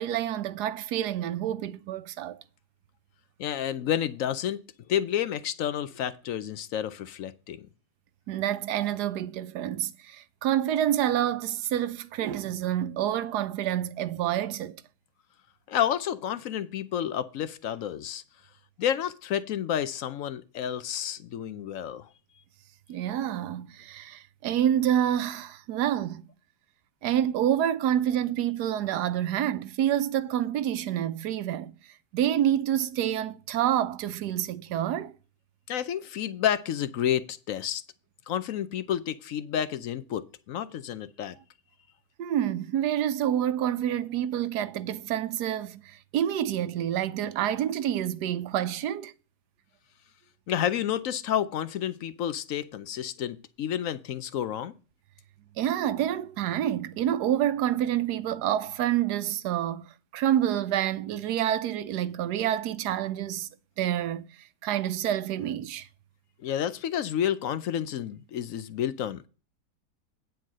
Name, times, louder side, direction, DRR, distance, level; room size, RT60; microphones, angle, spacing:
voice 1, 0.0-2.4 8.3-14.8 22.9-26.3 27.0-31.7 32.1-35.1 42.2-49.1 55.6-59.9 60.1-63.5 63.8-64.3 64.6-65.9, right 11 dB, 75° right, 1.2 m, -28 dB
voice 2, 3.4-4.6 4.9-7.6 15.7-18.2 18.8-22.1 35.7-37.8 38.3-41.4 50.5-54.7 66.4-69.3, left 10 dB, 65° left, 0.9 m, -30 dB
9.5 x 4.6 x 7.2 m
omnidirectional pair, 1.8 m